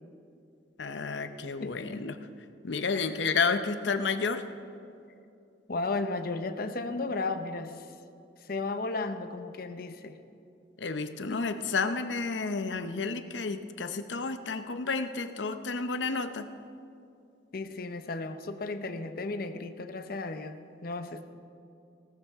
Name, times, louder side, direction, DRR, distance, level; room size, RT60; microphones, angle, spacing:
voice 1, 0.8-2.2 2.6-4.4 10.8-16.5, left 4 dB, 85° left, 9 dB, 0.7 m, -31 dB
voice 2, 1.6-2.1 3.0-3.1 5.7-7.9 8.4-10.2 11.3-11.4 17.5-21.3, left 3 dB, 55° left, 9 dB, 0.7 m, -34 dB
18.0 x 14.0 x 3.6 m, 2.6 s
head